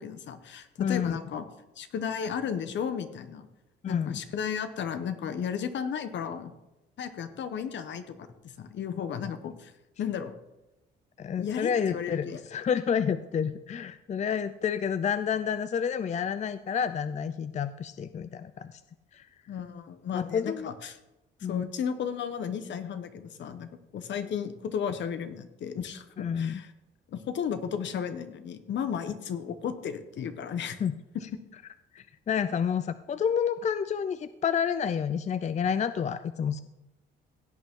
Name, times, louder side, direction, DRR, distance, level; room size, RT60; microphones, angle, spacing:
voice 1, 0.0-1.4 1.8-3.5 3.8-6.5 7.0-9.7 10.0-10.3 11.4-12.4 19.5-21.0 21.5-26.7 27.1-30.8 31.1-31.2, left 7 dB, 65° left, 10 dB, 1.1 m, -34 dB
voice 2, 0.8-1.2 3.8-4.1 11.2-18.8 19.1-19.3 20.1-20.7 21.4-21.6 26.2-26.6 30.8-30.9 31.9-36.6, left 7 dB, 35° left, 12 dB, 0.5 m, -29 dB
16.5 x 8.8 x 3.8 m, 0.98 s
cardioid pair, 90°, 20 cm